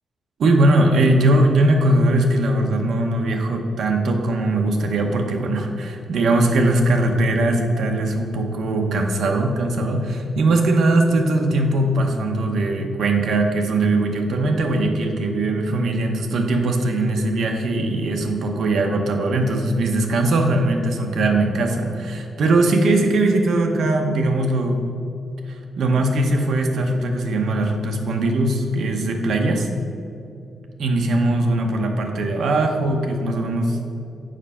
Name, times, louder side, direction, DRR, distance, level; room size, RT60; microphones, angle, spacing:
voice 1, 0.4-24.8 25.8-29.7 30.8-33.8, right 2 dB, 65° right, 2 dB, 0.8 m, -20 dB
7.5 x 5.3 x 5.6 m, 2.5 s
wide cardioid pair, 165°, 0 cm